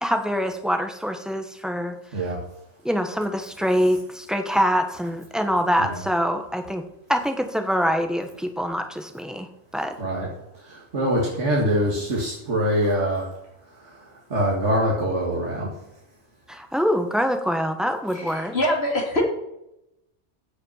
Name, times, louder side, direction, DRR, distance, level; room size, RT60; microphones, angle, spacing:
voice 1, 0.0-2.0 2.8-6.8 7.1-9.9 16.5-18.5, equal, ahead, 6 dB, 1.0 m, -24 dB
voice 2, 10.5-13.3 13.8-15.7, equal, 85° right, -3 dB, 2.3 m, -24 dB
voice 3, 18.1-19.2, left 1 dB, 60° left, 1 dB, 2.3 m, -24 dB
15.5 x 5.5 x 5.6 m, 0.85 s
omnidirectional pair, 1.2 m